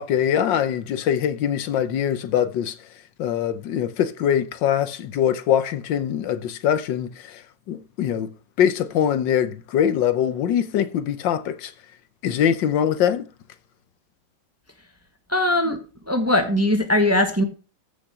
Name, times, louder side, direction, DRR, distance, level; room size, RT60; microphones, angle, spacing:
voice 1, 0.0-2.8 3.2-8.3 8.6-11.7 12.2-13.3, left 9 dB, 75° left, 1.5 m, -23 dB
voice 2, 15.3-15.8 16.1-17.4, left 1 dB, 10° right, 1.1 m, -20 dB
14.5 x 6.0 x 5.0 m
omnidirectional pair, 2.0 m